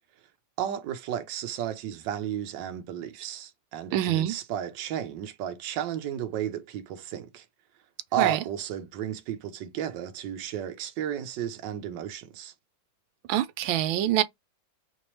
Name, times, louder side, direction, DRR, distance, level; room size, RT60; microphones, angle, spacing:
voice 1, 0.6-7.4 8.1-12.5, right 10 dB, 70° right, 1.5 m, -33 dB
voice 2, 3.9-4.3 8.2-8.4 13.3-14.2, right 12 dB, 90° right, 1.4 m, -25 dB
5.1 x 2.9 x 3.1 m
omnidirectional pair, 2.1 m